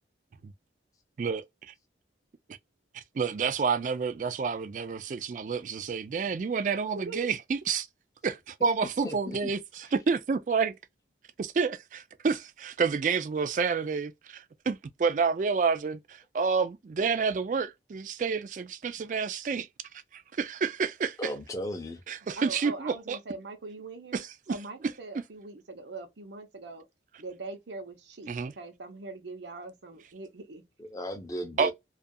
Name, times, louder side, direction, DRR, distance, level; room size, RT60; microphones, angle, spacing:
voice 1, 2.9-7.9 8.2-10.8 11.4-19.7 20.1-21.3 22.1-23.2 24.1-24.3 28.3-28.5 31.6-31.7, right 5 dB, 45° right, 0.3 m, -29 dB
voice 2, 6.8-7.3 22.4-26.8 27.2-30.6, right 3 dB, 80° right, 0.7 m, -42 dB
voice 3, 9.0-9.5 21.2-22.0 30.8-31.7, equal, 20° left, 0.5 m, -35 dB
2.4 x 2.3 x 2.6 m
head